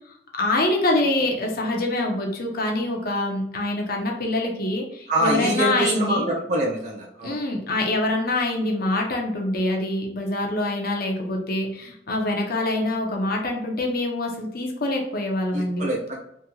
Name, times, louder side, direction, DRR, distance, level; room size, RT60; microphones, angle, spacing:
voice 1, 0.1-6.3 7.2-15.9, left 2 dB, 55° left, 1 dB, 1.0 m, -25 dB
voice 2, 5.1-7.4 15.5-16.2, right 1 dB, 40° right, -2 dB, 1.6 m, -25 dB
5.6 x 3.4 x 2.4 m, 0.76 s
head